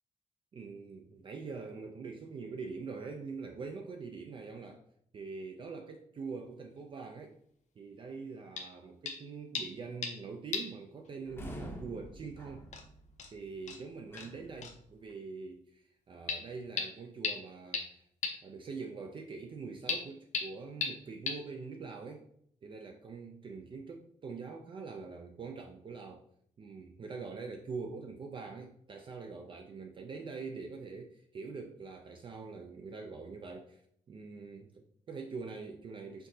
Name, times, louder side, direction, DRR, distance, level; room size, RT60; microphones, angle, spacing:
voice 1, 0.5-4.8 5.1-7.4 7.8-12.6 13.3-18.0 18.4-22.3 22.6-26.2 26.6-36.3, right 4 dB, 35° right, 3 dB, 0.4 m, -44 dB
sound 1, 8.6-8.7 9.1-9.2 9.5-10.2 10.5-10.8 11.1-11.2 12.2-12.3 12.7-12.8 13.2-13.3 13.7-13.8 14.2-14.3 14.6-14.7 16.3-16.4 16.8-16.9 17.2-17.3 17.7-17.8 18.2-18.3 19.9-20.0 20.3-20.4 20.8-20.9 21.3-21.4, left 5 dB, 60° left, 0.6 m, -35 dB
sound 2, 11.2-15.1, right 1 dB, 15° left, 0.7 m, -48 dB
4.5 x 3.7 x 2.7 m, 0.69 s
wide cardioid pair, 160°, 14 cm